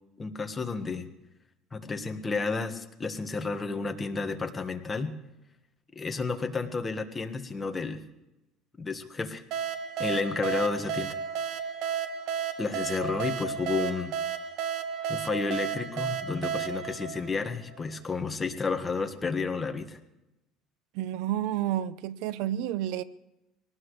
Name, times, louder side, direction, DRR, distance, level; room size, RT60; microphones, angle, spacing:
voice 1, 0.2-1.1 1.7-5.1 5.9-8.0 8.8-9.4 10.0-11.1 12.6-14.1 15.1-20.0, left 4 dB, 20° left, 1.5 m, -31 dB
sound 1, 9.5-18.0, right 7 dB, 60° right, 1.3 m, -33 dB
voice 2, 20.9-23.0, right 12 dB, 75° right, 0.6 m, -30 dB
23.5 x 19.0 x 3.3 m
cardioid pair, 140°, 0 cm